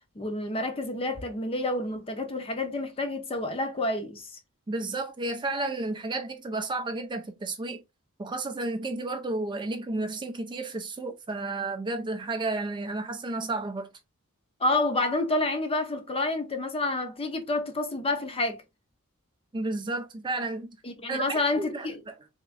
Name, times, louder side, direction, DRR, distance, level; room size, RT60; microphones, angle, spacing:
voice 1, 0.2-4.3 14.6-18.6 20.8-22.0, left 2 dB, 25° left, 0.6 m, -29 dB
voice 2, 4.7-7.8 8.2-13.9 19.5-20.7 21.1-21.9, right 2 dB, 20° right, 0.4 m, -32 dB
3.5 x 3.0 x 2.4 m
head